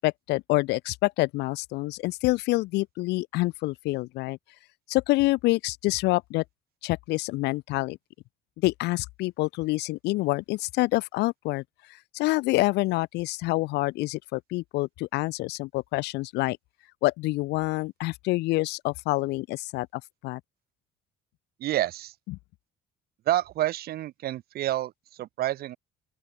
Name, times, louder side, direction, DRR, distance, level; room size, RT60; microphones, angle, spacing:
voice 1, 0.0-4.4 4.9-6.4 6.8-8.0 8.6-11.6 12.1-16.6 17.0-20.4 22.3-22.4, left 20 dB, 85° left, 0.9 m, -27 dB
voice 2, 21.6-22.1 23.3-25.8, right 14 dB, 65° right, 1.0 m, -28 dB
open air
cardioid pair, 110°, 17 cm